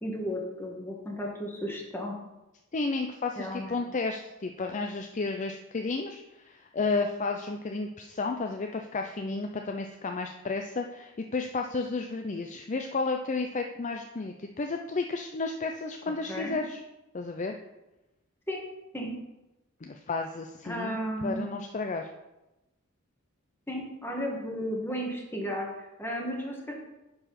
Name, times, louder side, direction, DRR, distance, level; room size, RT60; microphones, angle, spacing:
voice 1, 0.0-2.2 3.4-3.8 16.3-16.6 18.5-18.6 18.9-19.2 20.6-21.4 23.7-26.7, equal, 10° left, -1 dB, 1.9 m, -34 dB
voice 2, 2.7-16.8 17.1-17.5 19.8-22.1, left 3 dB, 35° left, 4 dB, 0.5 m, -32 dB
9.9 x 4.8 x 5.8 m, 0.98 s
head